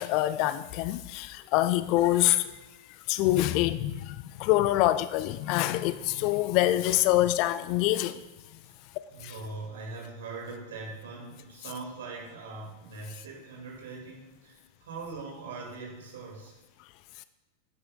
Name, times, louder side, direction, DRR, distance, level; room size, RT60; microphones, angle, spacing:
voice 1, 0.0-2.5 3.1-8.2 9.2-9.3, left 15 dB, 45° left, 0.3 m, -25 dB
voice 2, 9.1-16.6, right 3 dB, 60° right, 2.2 m, -41 dB
8.8 x 8.7 x 2.3 m
figure-of-eight pair, 90°, 0 cm